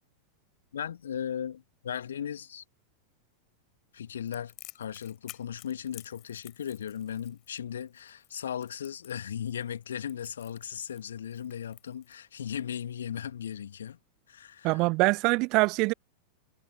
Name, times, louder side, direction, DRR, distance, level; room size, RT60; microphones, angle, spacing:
voice 1, 0.7-2.6 3.9-14.0 14.3-14.8, left 9 dB, 65° left, 2.3 m, -37 dB
Crackle, 4.3-12.5, left 19 dB, 40° left, 7.8 m, -52 dB
voice 2, 14.6-15.9, right 25 dB, 40° right, 0.4 m, -24 dB
figure-of-eight pair, 90°, 0 cm